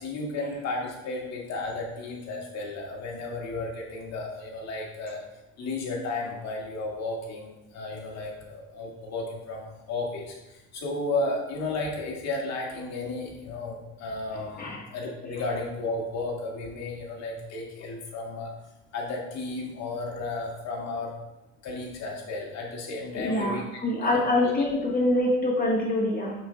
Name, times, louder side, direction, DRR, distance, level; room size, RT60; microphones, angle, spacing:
voice 1, 0.0-5.2 5.6-18.5 18.9-21.1 21.6-23.6 24.0-24.5, left 2 dB, 45° left, -2 dB, 1.9 m, -33 dB
voice 2, 23.1-26.3, left 1 dB, 25° left, -2 dB, 1.4 m, -25 dB
7.5 x 5.6 x 2.3 m, 0.97 s
supercardioid pair, 105°, 37 cm